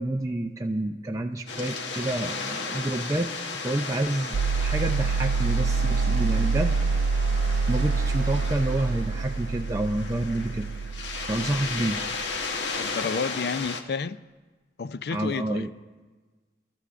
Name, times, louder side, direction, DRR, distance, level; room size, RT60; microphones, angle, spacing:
voice 1, 0.0-3.3 3.6-6.7 7.7-10.7 11.3-12.0 15.1-15.7, right 1 dB, 20° right, 0.4 m, -28 dB
sound 1, 1.5-13.8, left 4 dB, 85° left, 1.0 m, -35 dB
sound 2, 4.3-12.4, right 4 dB, 85° right, 0.3 m, -26 dB
voice 2, 12.8-14.2 14.8-15.7, left 5 dB, 60° left, 0.4 m, -30 dB
29.0 x 12.5 x 2.5 m
head